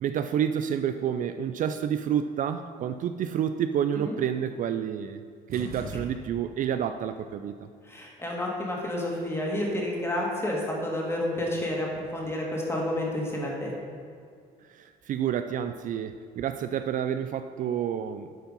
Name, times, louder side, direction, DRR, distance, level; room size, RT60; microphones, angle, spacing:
voice 1, 0.0-5.2 5.5-7.6 14.7-18.3, right 9 dB, 50° right, 9 dB, 0.4 m, -29 dB
sound 1, 5.5-6.7, right 2 dB, 65° right, 1.5 m, -40 dB
voice 2, 7.9-13.7, left 1 dB, 15° left, -2 dB, 2.0 m, -30 dB
9.2 x 4.6 x 5.3 m, 2.2 s
cardioid pair, 110°, 17 cm